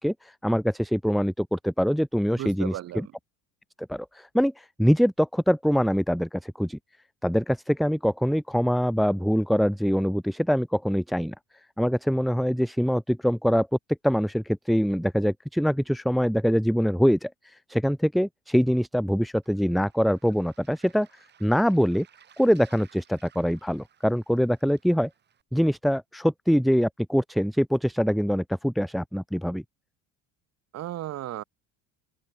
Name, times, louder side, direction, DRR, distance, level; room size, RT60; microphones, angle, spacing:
voice 1, 0.0-3.1 3.8-6.8 7.2-11.3 11.8-13.7 14.0-22.1 22.4-25.1 25.5-29.6, equal, ahead, 0.7 m, -24 dB
voice 2, 2.4-3.1 30.7-31.4, right 14 dB, 45° right, 3.7 m, -34 dB
Waves surf, 19.4-25.4, right 8 dB, 30° right, 6.6 m, -58 dB
open air
cardioid pair, 155°, 35 cm